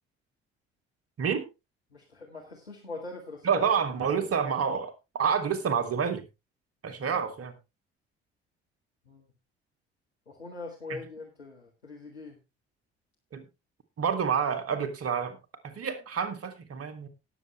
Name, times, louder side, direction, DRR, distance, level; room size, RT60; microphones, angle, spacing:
voice 1, 1.2-1.5 3.4-6.2 6.8-7.5 10.9-11.0 13.3-13.5 14.0-15.4 15.6-17.1, right 6 dB, 50° right, 8 dB, 2.4 m, -28 dB
voice 2, 1.9-3.6 9.1-9.2 10.3-12.4, left 3 dB, 90° left, -2 dB, 1.7 m, -42 dB
19.0 x 7.3 x 3.2 m, 0.26 s
figure-of-eight pair, 45°, 31 cm